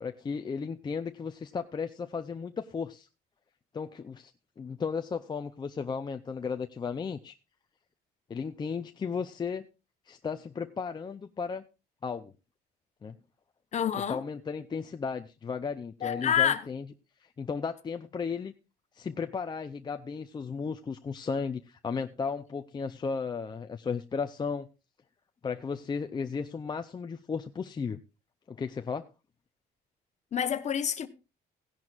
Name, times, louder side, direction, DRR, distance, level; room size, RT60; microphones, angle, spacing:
voice 1, 0.0-3.1 3.7-4.3 4.6-7.3 8.3-9.7 10.1-11.6 12.0-12.3 13.0-13.2 14.1-16.9 17.2-18.5 18.9-24.7 25.4-28.0 28.5-29.1, left 5 dB, 25° left, 0.6 m, -35 dB
voice 2, 13.7-14.2 16.0-16.6 30.3-31.1, left 9 dB, 45° left, 1.1 m, -27 dB
16.5 x 10.5 x 2.5 m
cardioid pair, 110°, 17 cm